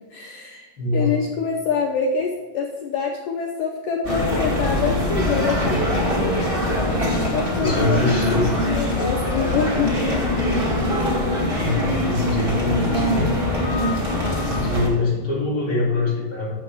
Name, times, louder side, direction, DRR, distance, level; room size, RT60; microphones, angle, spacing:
voice 1, 0.1-6.2 7.3-10.0 10.6-10.7 11.2-11.5 14.0-14.4, left 5 dB, 75° left, 1 dB, 2.0 m, -26 dB
voice 2, 0.8-1.1 5.6-5.8 7.6-8.4 11.5-13.3 14.3-16.5, left 2 dB, 35° left, -6 dB, 2.4 m, -24 dB
sound 1, 4.0-14.9, left 1 dB, 35° right, 0.8 m, -22 dB
11.0 x 7.7 x 3.6 m, 1.3 s
omnidirectional pair, 4.8 m